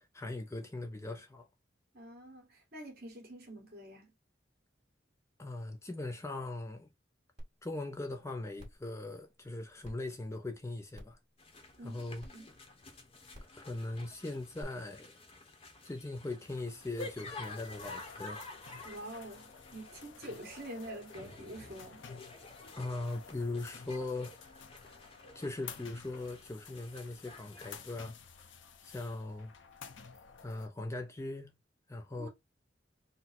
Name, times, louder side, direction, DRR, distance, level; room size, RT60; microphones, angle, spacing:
voice 1, 0.0-1.5 5.4-6.9 7.6-11.2 11.8-12.3 13.5-15.1 15.8-18.4 22.8-24.3 25.3-28.2 28.8-29.5 30.4-31.6 31.9-32.3, left 2 dB, 15° left, 0.5 m, -40 dB
voice 2, 1.9-4.2 11.8-12.0 12.3-12.5 18.8-22.1 32.1-32.3, right 1 dB, 55° right, 1.9 m, -46 dB
sound 1, 7.4-7.5 7.9-8.0 8.6-8.8 9.8-9.9 10.9-11.2 12.2-12.3 13.3-13.6 14.6-14.7, equal, 35° right, 2.1 m, -48 dB
sound 2, 11.4-28.0, left 3 dB, 30° left, 0.9 m, -51 dB
sound 3, 16.4-30.7, left 6 dB, 90° left, 0.6 m, -52 dB
4.0 x 2.2 x 4.2 m
head